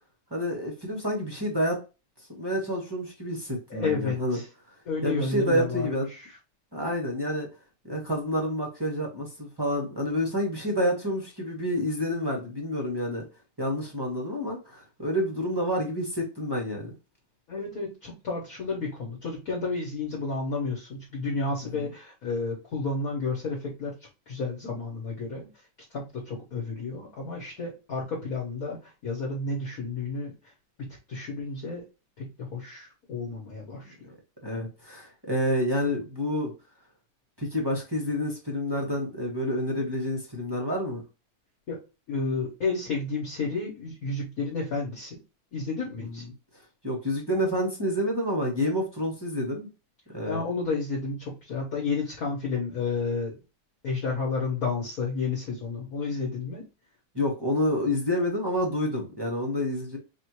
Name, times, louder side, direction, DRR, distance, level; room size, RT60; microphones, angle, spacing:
voice 1, 0.3-1.8 2.3-4.4 5.0-6.1 6.7-7.5 7.8-13.2 13.6-16.9 34.4-36.5 37.4-41.0 46.0-46.2 46.8-49.7 50.1-50.4 57.1-60.0, equal, 20° right, -1 dB, 0.8 m, -28 dB
voice 2, 3.7-4.5 4.8-6.4 17.5-24.0 24.3-25.5 25.9-30.3 30.9-31.8 32.2-33.9 41.7-41.8 42.1-45.2 45.5-46.2 50.2-53.4 53.8-56.6, left 4 dB, 45° left, -3 dB, 1.4 m, -31 dB
5.1 x 2.7 x 3.0 m, 0.29 s
omnidirectional pair, 2.4 m